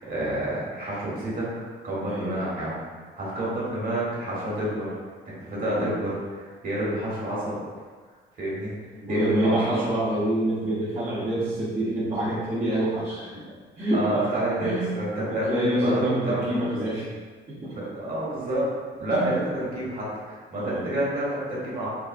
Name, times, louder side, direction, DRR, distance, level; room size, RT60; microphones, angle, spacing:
voice 1, 0.0-2.8 3.2-4.9 5.4-7.6 8.4-8.8 9.1-9.8 12.3-12.4 13.3-13.4 13.9-15.5 15.8-16.5 17.7-18.7 19.0-21.9, right 1 dB, 45° right, -7 dB, 1.4 m, -28 dB
voice 2, 2.0-2.5 5.5-6.1 9.0-13.3 13.8-14.0 14.6-15.0 15.3-17.1 17.5-17.8 19.1-19.3 20.5-20.9, right 1 dB, 30° right, -11 dB, 0.8 m, -27 dB
3.6 x 2.2 x 2.5 m, 1.5 s
cardioid pair, 90°, 20 cm